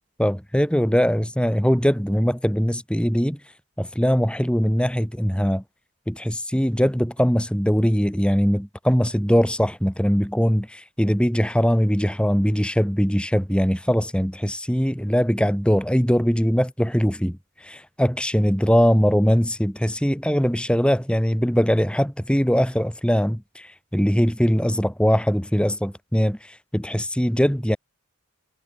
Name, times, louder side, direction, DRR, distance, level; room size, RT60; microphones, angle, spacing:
voice 1, 0.2-3.4 3.8-5.6 6.1-27.8, equal, 5° left, 3.6 m, -21 dB
head